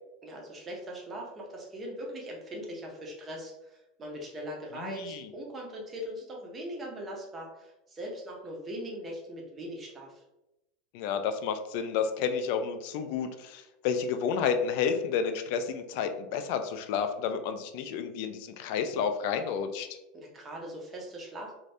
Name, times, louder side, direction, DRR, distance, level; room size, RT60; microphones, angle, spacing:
voice 1, 0.2-10.2 20.1-21.5, equal, 15° right, 0 dB, 0.6 m, -40 dB
voice 2, 4.7-5.3 10.9-19.9, left 6 dB, 50° left, 8 dB, 0.3 m, -31 dB
2.6 x 2.5 x 3.3 m, 0.93 s
supercardioid pair, 175°, 0 cm